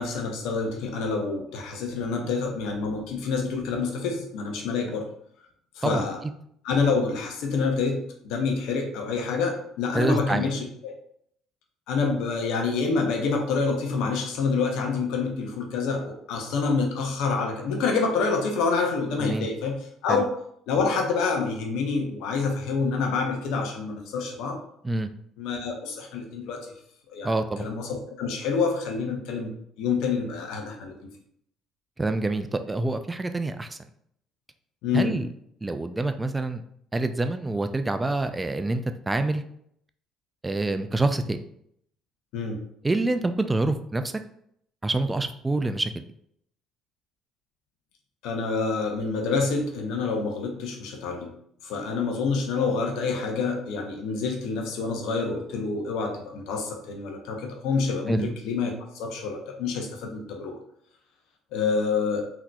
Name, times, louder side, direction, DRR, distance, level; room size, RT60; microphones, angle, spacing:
voice 1, 0.0-5.1 5.8-6.2 6.6-10.9 11.9-19.8 20.0-20.3 20.7-24.6 25.4-26.7 27.1-27.3 27.6-29.5 29.8-31.0 34.8-35.2 42.3-42.6 48.2-51.3 51.6-60.6 61.5-62.2, left 4 dB, 70° left, 2 dB, 0.7 m, -27 dB
voice 2, 9.9-10.5 19.2-19.5 20.1-20.2 24.8-25.1 27.2-27.7 32.0-33.8 34.9-35.3 35.6-36.6 36.9-39.4 40.4-41.4 42.8-44.1 44.8-45.9 58.1-58.3, right 2 dB, 20° right, 8 dB, 0.3 m, -26 dB
3.7 x 2.8 x 2.3 m, 0.70 s
hypercardioid pair, 60°, 0 cm